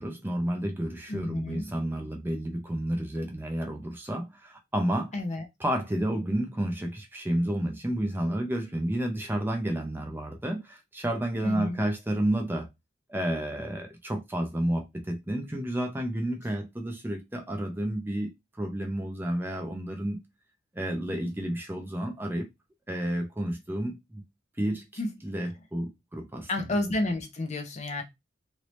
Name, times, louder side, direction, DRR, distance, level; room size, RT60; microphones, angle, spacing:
voice 1, 0.0-5.1 5.6-12.7 13.1-18.3 18.6-20.2 20.7-22.5 22.9-24.2 24.6-24.8 25.2-26.7, right 1 dB, 10° right, 0.5 m, -31 dB
voice 2, 1.1-1.6 5.1-5.5 11.4-11.8 25.0-25.1 26.5-28.0, left 2 dB, 35° left, 0.6 m, -30 dB
3.2 x 2.7 x 3.0 m
head